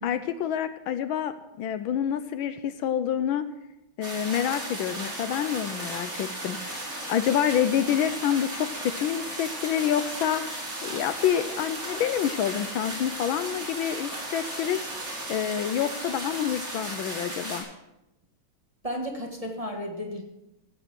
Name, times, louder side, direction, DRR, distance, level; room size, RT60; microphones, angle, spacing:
voice 1, 0.0-3.5 4.0-10.4 10.8-14.8 15.3-17.7, left 9 dB, 75° left, 12 dB, 1.4 m, -27 dB
sound 1, 4.0-17.6, right 1 dB, 40° right, 4.3 m, -35 dB
voice 2, 18.8-20.2, equal, 20° right, 0 dB, 1.4 m, -33 dB
15.5 x 7.7 x 6.0 m, 0.91 s
omnidirectional pair, 2.3 m